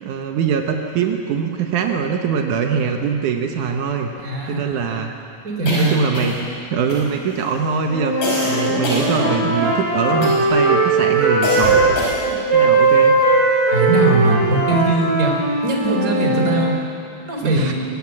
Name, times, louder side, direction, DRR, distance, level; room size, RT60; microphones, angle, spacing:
voice 1, 0.0-4.1 4.5-5.2 5.6-6.4 6.7-8.2 8.4-11.8 12.5-13.2 17.4-17.7, right 6 dB, 80° right, 3 dB, 2.6 m, -22 dB
voice 2, 4.2-4.6 5.4-6.0 13.1-13.3 13.7-15.3 15.6-16.7 17.3-17.7, right 3 dB, 25° right, 0 dB, 3.8 m, -20 dB
sound 1, 5.7-6.6 6.9-7.4 8.2-9.7 10.2-10.6 11.4-12.4, equal, 70° left, 6.8 m, -25 dB
sound 2, 7.9-12.0 12.5-16.7, right 2 dB, 50° right, 6.2 m, -18 dB
23.5 x 19.5 x 7.7 m, 2.6 s
omnidirectional pair, 3.5 m